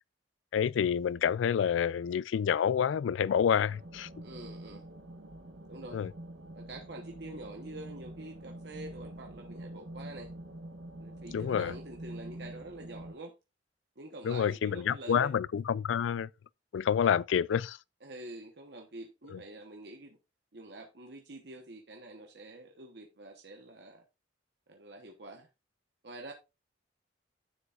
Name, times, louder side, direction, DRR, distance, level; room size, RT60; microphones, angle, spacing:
voice 1, 0.5-4.1 5.9-6.1 11.3-11.7 14.2-16.3 16.7-17.8 19.3-19.4, left 8 dB, 90° left, 0.3 m, -28 dB
sound 1, 3.7-13.1, right 1 dB, 85° right, 1.3 m, -46 dB
voice 2, 4.2-4.9 5.7-6.0 6.5-10.3 11.0-13.3 14.0-15.3 18.0-20.2 20.5-24.0 24.7-25.5 26.0-26.3, right 2 dB, 60° right, 1.1 m, -46 dB
11.0 x 6.9 x 2.4 m
head